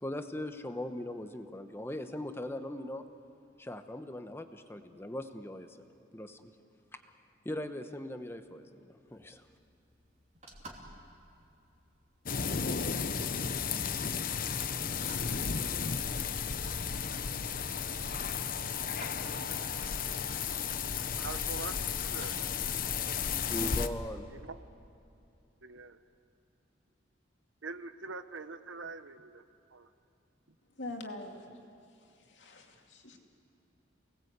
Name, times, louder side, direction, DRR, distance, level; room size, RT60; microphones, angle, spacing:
voice 1, 0.0-3.0 3.6-5.9 6.1-6.5 7.4-9.4 23.5-24.2, left 1 dB, 10° left, 8 dB, 1.0 m, -40 dB
sound 1, 9.1-24.4, right 2 dB, 35° right, 3.1 m, -56 dB
sound 2, 12.3-23.9, left 6 dB, 45° left, 0.8 m, -34 dB
voice 2, 21.2-22.4 24.4-24.5 25.6-26.0 27.6-29.4 29.7-29.9, right 4 dB, 85° right, 11 dB, 1.0 m, -43 dB
voice 3, 30.8-31.6 32.0-33.2, left 2 dB, 65° left, 2 dB, 2.6 m, -44 dB
28.5 x 19.5 x 8.2 m, 2.7 s
head